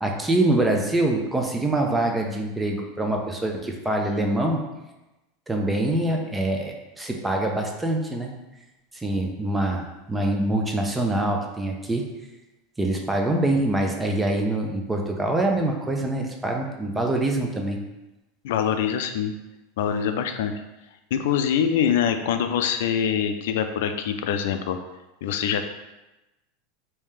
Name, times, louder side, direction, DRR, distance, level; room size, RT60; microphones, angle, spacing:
voice 1, 0.0-4.6 5.5-8.3 8.9-12.0 12.8-17.8, right 1 dB, 10° right, 1 dB, 0.4 m, -24 dB
voice 2, 18.4-19.3 19.8-20.6 21.1-24.8 25.2-25.6, left 8 dB, 80° left, 7 dB, 0.3 m, -24 dB
3.2 x 2.7 x 3.5 m, 1.0 s
supercardioid pair, 155°, 0 cm